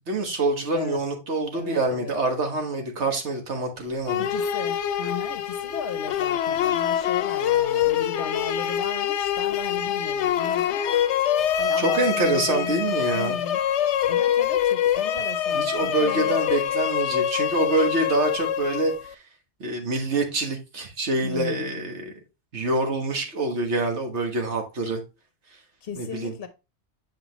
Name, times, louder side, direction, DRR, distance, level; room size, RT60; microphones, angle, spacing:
voice 1, 0.1-4.3 11.8-13.4 15.5-18.9 19.6-22.1 22.5-25.0 26.0-26.3, right 2 dB, 85° right, 1.7 m, -26 dB
voice 2, 1.5-2.1 4.3-13.6 14.1-16.4 21.2-21.8 25.8-26.5, left 6 dB, 60° left, 1.0 m, -36 dB
sound 1, 4.1-19.1, left 9 dB, 85° left, 0.9 m, -25 dB
7.7 x 5.0 x 3.0 m
omnidirectional pair, 1.1 m